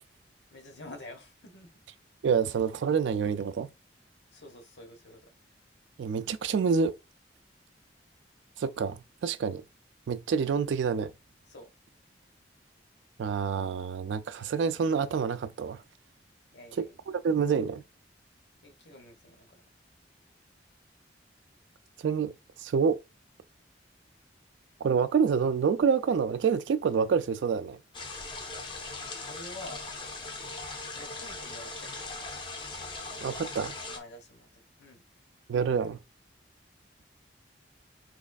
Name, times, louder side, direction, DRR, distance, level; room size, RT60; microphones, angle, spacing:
voice 1, 0.5-1.7 4.3-5.3 11.5-11.7 16.5-16.9 18.6-19.6 29.2-29.9 31.0-32.3 33.9-35.0, left 1 dB, 70° left, 1.2 m, -48 dB
voice 2, 2.2-3.7 6.0-6.9 8.6-9.6 10.1-11.1 13.2-15.8 16.8-16.9 17.2-17.8 22.0-22.3 22.6-23.0 24.8-27.8 33.2-33.7 35.5-36.0, right 6 dB, 80° right, 0.3 m, -27 dB
sound 1, 27.9-34.0, left 3 dB, 25° left, 0.6 m, -39 dB
4.1 x 3.1 x 2.3 m
head